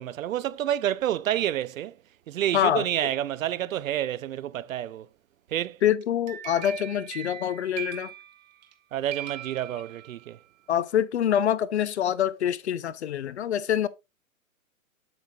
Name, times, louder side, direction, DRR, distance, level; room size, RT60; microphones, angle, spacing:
voice 1, 0.0-1.9 2.3-5.1 5.5-5.8 8.9-10.4, right 12 dB, 70° right, 0.5 m, -29 dB
voice 2, 2.5-2.9 5.8-8.1 10.7-13.9, left 10 dB, 50° left, 0.5 m, -25 dB
sound 1, 6.0-8.8 9.1-10.4, right 11 dB, 30° right, 0.9 m, -40 dB
7.9 x 7.3 x 2.3 m
hypercardioid pair, 165°, 42 cm